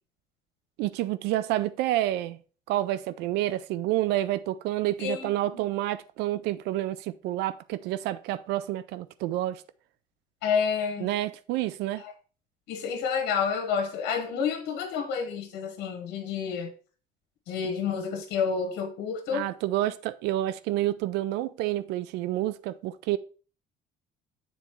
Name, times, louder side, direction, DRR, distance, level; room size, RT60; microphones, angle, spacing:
voice 1, 0.8-2.4 2.7-9.6 11.0-12.0 19.3-23.2, right 14 dB, 90° right, 0.4 m, -29 dB
voice 2, 5.0-5.6 10.4-11.1 12.0-12.1 12.7-16.7 17.5-19.5, left 6 dB, 85° left, 1.1 m, -29 dB
7.0 x 4.1 x 4.4 m
cardioid pair, 110°, 17 cm